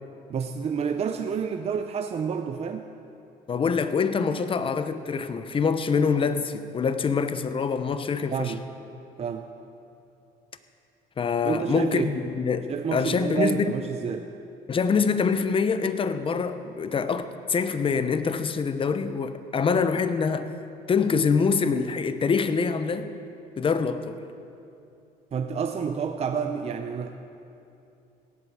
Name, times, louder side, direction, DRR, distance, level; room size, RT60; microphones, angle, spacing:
voice 1, 0.3-2.9 8.3-8.6 9.2-9.5 11.4-12.2 12.7-14.3 25.3-27.1, right 6 dB, 40° right, 6 dB, 0.6 m, -29 dB
voice 2, 3.5-8.5 11.2-13.7 14.7-20.5 20.9-23.1 23.6-24.2, left 5 dB, 30° left, 11 dB, 0.8 m, -25 dB
17.5 x 8.5 x 7.3 m, 2.7 s
cardioid pair, 110°, 17 cm